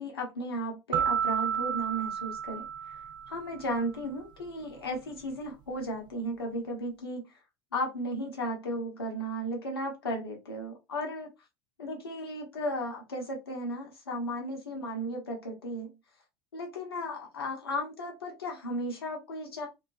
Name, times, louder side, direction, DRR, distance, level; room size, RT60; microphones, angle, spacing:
voice 1, 0.0-3.0 3.3-7.2 7.7-11.3 11.8-15.9 16.5-19.7, equal, 90° left, 2 dB, 0.8 m, -35 dB
sound 1, 0.9-3.7, right 8 dB, 35° right, 0.3 m, -31 dB
2.3 x 2.2 x 2.5 m, 0.23 s
hypercardioid pair, 80°, 12 cm